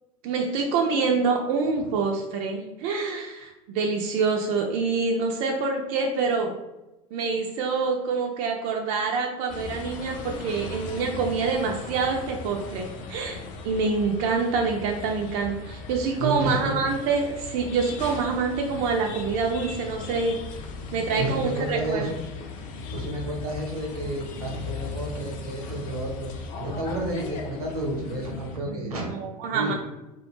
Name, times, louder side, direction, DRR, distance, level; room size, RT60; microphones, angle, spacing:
voice 1, 0.2-6.5 7.1-20.4 20.9-22.1 28.7-29.7, right 4 dB, 55° right, 1 dB, 0.4 m, -26 dB
sound 1, 9.5-28.6, left 3 dB, 45° left, 0.5 m, -38 dB
voice 2, 16.2-16.9 21.2-22.1 22.9-26.3 26.6-29.1 29.5-29.7, right 1 dB, 80° right, 1 dB, 0.8 m, -31 dB
2.4 x 2.2 x 3.0 m, 1.0 s
hypercardioid pair, 85°, 19 cm